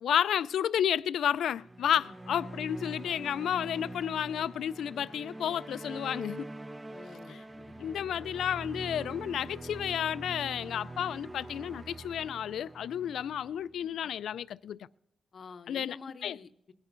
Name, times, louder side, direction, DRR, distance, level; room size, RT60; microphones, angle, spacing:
voice 1, 0.0-6.5 7.3-7.4 7.8-14.8 15.7-16.0 16.2-16.4, left 9 dB, 85° left, 0.3 m, -31 dB
sound 1, 1.5-14.0, right 2 dB, 15° right, 0.4 m, -44 dB
voice 2, 6.9-7.9 15.3-16.7, left 5 dB, 40° left, 0.6 m, -49 dB
22.0 x 10.5 x 2.5 m
wide cardioid pair, 165°, 0 cm